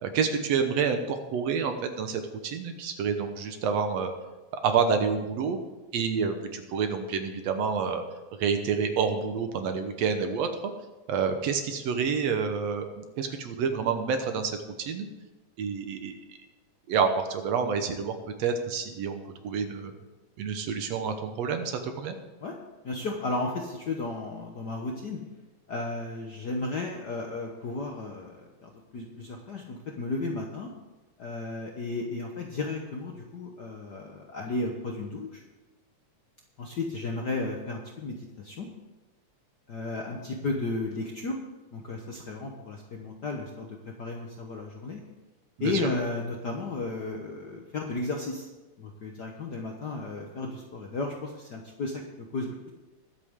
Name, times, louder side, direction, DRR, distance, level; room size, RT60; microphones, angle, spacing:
voice 1, 0.0-4.1 4.6-5.6 5.9-8.0 8.4-10.5 11.1-15.1 15.6-16.1 16.9-18.1 18.4-19.9 20.4-22.2 45.6-45.7, right 6 dB, 65° right, 6 dB, 1.9 m, -28 dB
voice 2, 22.8-25.2 25.7-30.7 31.2-35.4 36.6-38.7 39.7-41.4 41.7-45.0 45.6-48.5 48.8-52.7, left 3 dB, 75° left, 1 dB, 0.9 m, -34 dB
21.0 x 8.3 x 3.6 m, 1.1 s
omnidirectional pair, 3.5 m